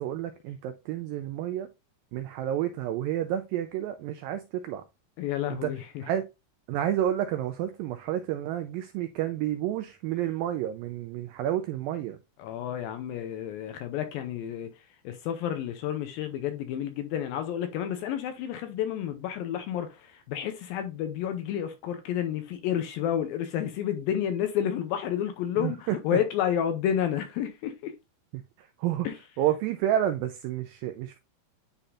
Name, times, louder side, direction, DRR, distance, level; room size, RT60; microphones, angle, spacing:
voice 1, 0.0-1.7 2.1-4.8 5.5-5.7 6.0-6.2 6.7-12.2 25.6-26.0 28.6-29.1 29.4-31.2, right 11 dB, 85° right, 2.0 m, -30 dB
voice 2, 5.2-6.0 12.4-27.9 29.0-29.2, left 10 dB, 80° left, 2.2 m, -30 dB
9.9 x 4.1 x 2.5 m
omnidirectional pair, 4.6 m